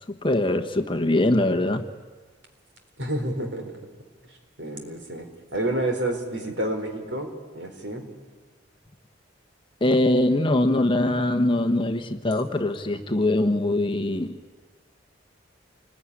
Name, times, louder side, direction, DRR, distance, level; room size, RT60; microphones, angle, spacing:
voice 1, 0.1-1.9 9.8-14.3, left 1 dB, 25° left, 7 dB, 1.2 m, -22 dB
voice 2, 3.0-3.9 4.6-5.3 5.5-8.0, right 1 dB, 70° right, 5 dB, 4.0 m, -29 dB
28.0 x 20.5 x 9.9 m, 1.4 s
head